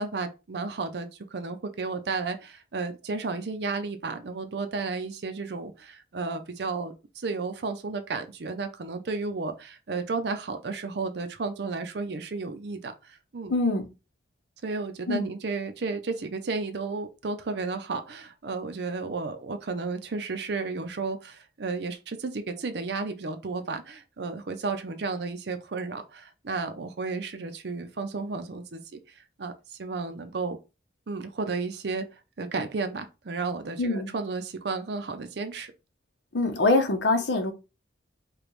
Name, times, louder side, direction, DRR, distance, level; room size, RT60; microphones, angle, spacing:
voice 1, 0.0-13.5 14.6-29.0 29.4-29.5 29.8-30.6 31.1-32.1 32.4-35.7, right 4 dB, 65° right, 0.5 m, -33 dB
voice 2, 13.5-13.9 15.1-15.3 33.8-34.1 36.3-37.5, left 2 dB, 80° left, 0.8 m, -24 dB
5.0 x 2.3 x 3.1 m
head